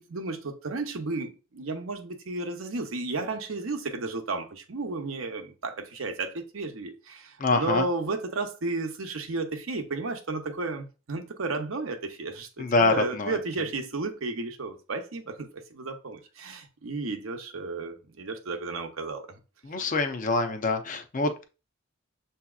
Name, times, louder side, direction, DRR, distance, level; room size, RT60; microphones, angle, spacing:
voice 1, 0.0-19.3, right 3 dB, 75° right, 0.7 m, -33 dB
voice 2, 7.4-7.8 12.6-13.4 19.6-21.4, left 3 dB, 40° left, 0.6 m, -25 dB
6.9 x 2.8 x 2.3 m
head